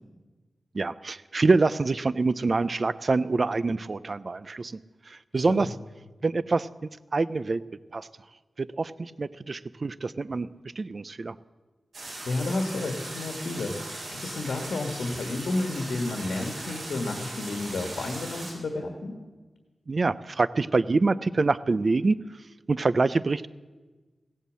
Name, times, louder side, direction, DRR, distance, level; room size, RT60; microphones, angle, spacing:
voice 1, 0.7-4.8 5.1-5.7 6.2-7.6 7.9-8.1 8.6-10.5 10.8-11.4 19.9-22.2 22.7-23.5, right 3 dB, 45° right, 17 dB, 0.4 m, -25 dB
sound 1, 11.9-18.5, right 2 dB, 70° right, 4.7 m, -39 dB
voice 2, 12.2-19.2, left 2 dB, 90° left, 4 dB, 1.4 m, -31 dB
16.0 x 8.3 x 7.4 m, 1.3 s
wide cardioid pair, 90°, 0 cm